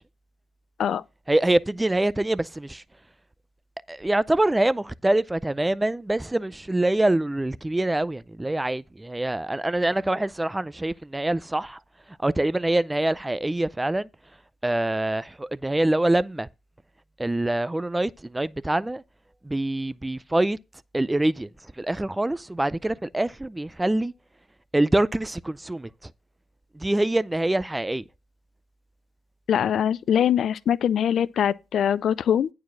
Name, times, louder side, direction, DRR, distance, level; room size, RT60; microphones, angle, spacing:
voice 1, 1.3-2.8 3.9-11.8 12.2-14.1 14.6-16.5 17.2-19.0 19.4-20.6 20.9-21.5 21.8-24.1 24.7-26.1 26.7-28.0, right 1 dB, 10° right, 0.5 m, -25 dB
voice 2, 29.5-32.5, left 9 dB, 65° left, 0.5 m, -22 dB
9.3 x 4.8 x 6.1 m
cardioid pair, 90°, 0 cm